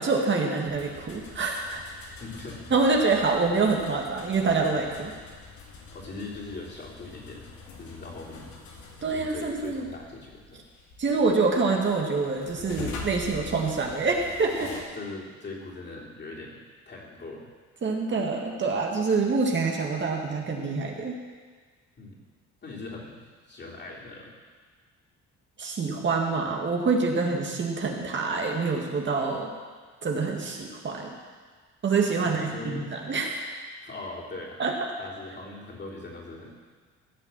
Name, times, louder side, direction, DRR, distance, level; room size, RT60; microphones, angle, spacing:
voice 1, 0.0-1.8 2.7-5.1 9.0-9.9 11.0-14.7 17.8-21.2 25.6-29.5 30.0-31.2 31.8-33.5 34.6-34.7, right 4 dB, 40° right, 1 dB, 1.8 m, -26 dB
sound 1, 0.6-14.8, left 3 dB, 80° left, 2.5 m, -44 dB
voice 2, 2.2-2.7 5.9-7.5 7.8-8.5 9.1-10.6 14.6-17.5 22.0-22.2 22.6-24.4 32.2-32.9 33.8-34.6 35.0-36.5, left 3 dB, 35° left, -4 dB, 3.7 m, -40 dB
15.5 x 5.9 x 7.5 m, 1.5 s
cardioid pair, 100°, 29 cm